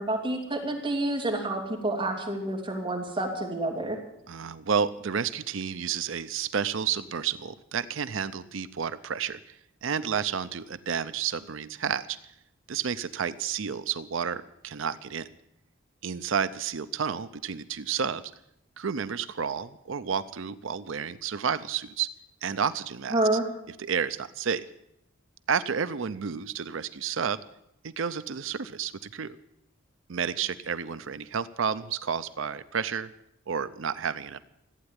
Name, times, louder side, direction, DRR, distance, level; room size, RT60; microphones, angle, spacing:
voice 1, 0.0-4.0 23.1-23.4, right 2 dB, 25° right, -1 dB, 2.9 m, -28 dB
voice 2, 4.3-12.2 12.7-15.3 16.0-18.2 18.8-22.1 22.4-23.2 23.8-24.6 25.5-27.4 27.8-29.4 30.1-33.1 33.5-34.4, right 7 dB, 65° right, 14 dB, 0.6 m, -31 dB
15.0 x 8.9 x 9.8 m, 0.80 s
head